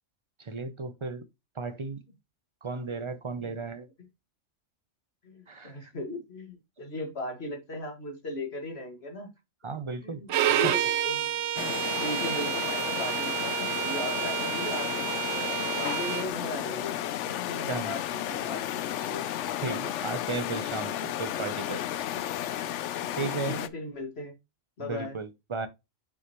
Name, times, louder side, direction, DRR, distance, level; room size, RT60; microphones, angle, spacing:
voice 1, 0.4-1.2 1.6-2.0 2.6-3.9 5.5-5.9 9.6-10.7 11.6-11.7 17.5-17.9 19.6-22.0 23.2-23.6 24.8-25.7, right 4 dB, 45° right, 0.4 m, -35 dB
voice 2, 5.2-9.3 10.0-11.3 12.0-14.9 15.3-16.9 17.2-19.3 19.6-19.9 23.4-24.3 24.8-25.2, left 2 dB, 50° left, 2.1 m, -37 dB
Bowed string instrument, 10.3-16.3, right 12 dB, 75° right, 0.9 m, -29 dB
sound 1, 11.6-23.7, left 11 dB, 70° left, 0.8 m, -33 dB
6.3 x 5.9 x 2.9 m
omnidirectional pair, 1.4 m